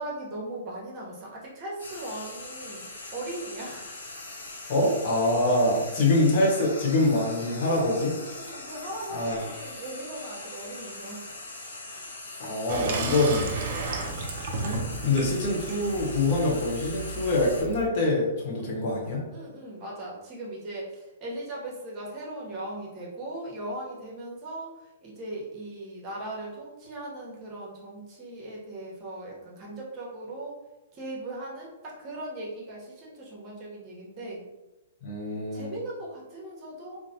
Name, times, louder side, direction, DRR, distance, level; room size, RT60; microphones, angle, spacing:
voice 1, 0.0-4.0 7.6-11.5 19.3-30.6 30.9-34.5 35.5-37.0, right 1 dB, 35° right, -4 dB, 0.9 m, -39 dB
Frying (food), 1.8-17.6, left 2 dB, 75° left, 0.8 m, -41 dB
voice 2, 4.7-8.1 9.1-9.4 12.4-13.6 14.6-19.2 35.0-35.7, left 2 dB, 50° left, -3 dB, 0.9 m, -25 dB
Water tap faucet / Sink (filling or washing), 12.7-17.9, right 3 dB, 55° right, 0.5 m, -34 dB
3.1 x 2.1 x 2.6 m, 1.0 s
hypercardioid pair, 125°, 0 cm